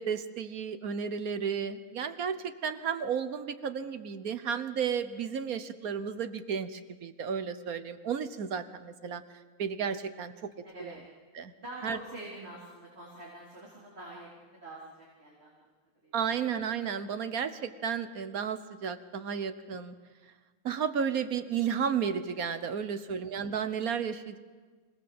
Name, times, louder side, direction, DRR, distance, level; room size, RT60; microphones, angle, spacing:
voice 1, 0.0-9.2 9.6-10.5 10.8-10.9 11.3-11.5 11.8-12.0 16.1-19.9 20.6-24.4, right 7 dB, 70° right, 11 dB, 1.5 m, -33 dB
voice 2, 10.6-11.1 11.6-15.6 16.0-16.1 22.8-23.1, right 2 dB, 40° right, -4 dB, 4.1 m, -46 dB
25.5 x 18.5 x 7.8 m, 1.4 s
omnidirectional pair, 1.6 m